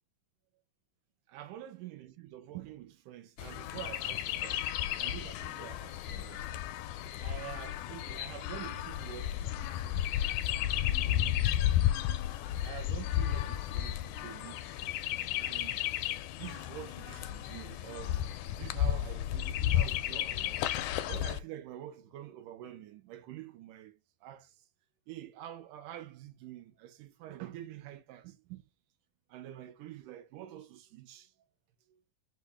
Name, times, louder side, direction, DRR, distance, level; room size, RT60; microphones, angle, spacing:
voice 1, 1.3-4.6 5.0-6.4 7.0-10.1 10.8-11.6 12.6-14.8 15.4-15.9 16.4-20.6 21.1-24.6 25.1-28.7 29.3-31.3 31.9-32.0, right 13 dB, 85° right, 2.3 m, -47 dB
Chirp tweet, 3.4-21.4, left 12 dB, 80° left, 1.8 m, -33 dB
6.2 x 2.4 x 3.4 m
omnidirectional pair, 3.6 m